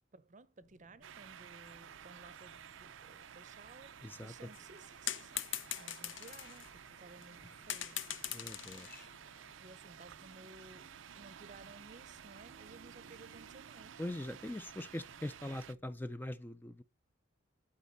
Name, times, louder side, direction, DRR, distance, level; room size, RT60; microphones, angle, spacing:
voice 1, 0.1-5.5 5.8-8.1 9.6-14.0, right 3 dB, 40° right, 0.7 m, -57 dB
sound 1, 0.6-16.3, left 1 dB, 90° left, 2.6 m, -68 dB
sound 2, 1.0-15.7, right 8 dB, 75° right, 0.5 m, -53 dB
voice 2, 4.0-4.3 8.3-9.1 14.0-16.8, left 1 dB, 10° left, 0.4 m, -42 dB
sound 3, 4.5-6.7 7.2-7.3 7.7-9.5, left 11 dB, 75° left, 0.7 m, -41 dB
11.5 x 5.1 x 4.0 m
head